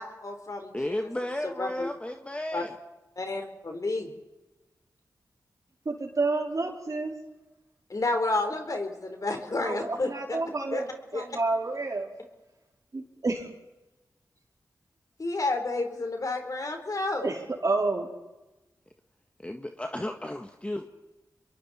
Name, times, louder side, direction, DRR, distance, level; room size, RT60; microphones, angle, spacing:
voice 1, 0.0-1.1 1.4-1.9 2.5-2.6 3.2-4.1 7.9-10.4 10.7-10.8 11.1-11.2 15.2-17.3, left 2 dB, 50° left, 4 dB, 4.3 m, -30 dB
voice 2, 0.7-2.7 19.4-20.9, left 1 dB, 15° left, 4 dB, 1.6 m, -34 dB
voice 3, 5.8-7.1 9.6-12.1 12.9-13.5 17.2-18.1, right 3 dB, 50° right, 0 dB, 4.6 m, -29 dB
27.0 x 22.5 x 4.5 m, 1.1 s
cardioid pair, 45°, 7 cm